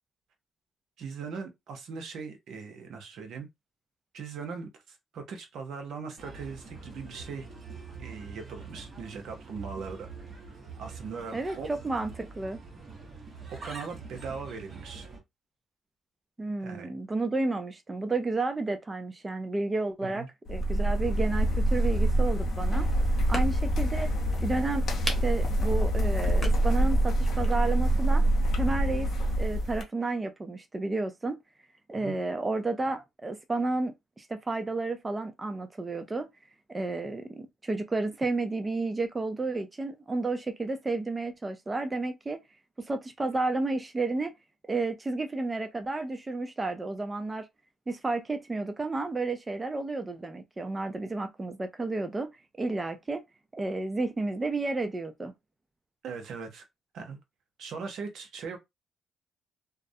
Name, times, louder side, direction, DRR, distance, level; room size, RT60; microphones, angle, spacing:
voice 1, 1.0-3.5 4.1-7.5 8.0-10.1 10.8-11.7 13.5-15.1 16.6-16.9 20.0-20.3 32.0-32.2 56.0-56.6 56.9-57.2 57.6-58.6, right 5 dB, 75° right, 0.7 m, -39 dB
Bird, 6.2-15.2, right 4 dB, 40° right, 0.9 m, -45 dB
voice 2, 11.3-12.6 16.4-22.9 23.2-24.1 24.4-28.2 28.5-29.1 29.4-31.4 31.9-36.3 36.7-42.4 42.8-44.3 44.7-47.5 47.9-52.3 52.6-53.2 53.5-55.3, right 3 dB, 20° right, 0.4 m, -31 dB
sound 1, 20.5-29.8, right 1 dB, 65° left, 0.6 m, -25 dB
sound 2, 22.4-27.7, left 2 dB, 20° left, 1.0 m, -42 dB
2.4 x 2.0 x 2.6 m
cardioid pair, 90°, 0 cm